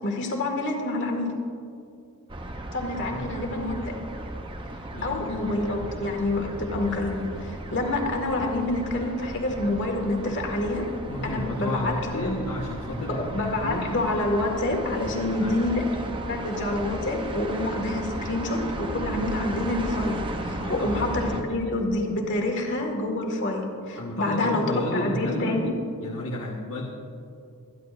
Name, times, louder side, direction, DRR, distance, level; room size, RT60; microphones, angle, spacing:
voice 1, 0.0-1.3 2.7-4.0 5.0-10.9 11.2-12.3 13.1-25.7, left 2 dB, 55° left, 1 dB, 2.0 m, -27 dB
sound 1, 2.3-21.4, right 1 dB, 20° right, 0.7 m, -35 dB
voice 2, 4.9-5.5 11.1-13.9 15.0-15.7 20.6-21.2 24.0-25.6 26.0-26.8, left 1 dB, 75° left, -2 dB, 1.4 m, -32 dB
26.5 x 11.0 x 2.6 m, 2.5 s
head